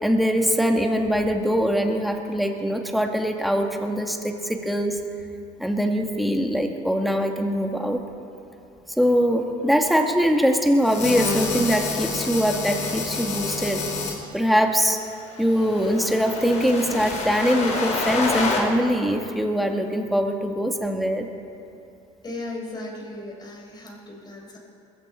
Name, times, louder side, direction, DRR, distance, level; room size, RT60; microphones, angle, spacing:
voice 1, 0.0-5.0 5.6-8.0 9.0-13.8 14.3-15.0 15.4-21.3, equal, ahead, 3 dB, 1.9 m, -22 dB
sound 1, 10.8-14.1 15.2-18.6, left 3 dB, 50° left, 4.1 m, -28 dB
voice 2, 22.2-24.6, left 2 dB, 30° left, 0 dB, 4.5 m, -36 dB
21.0 x 15.5 x 4.4 m, 2.7 s
supercardioid pair, 90°, 15 cm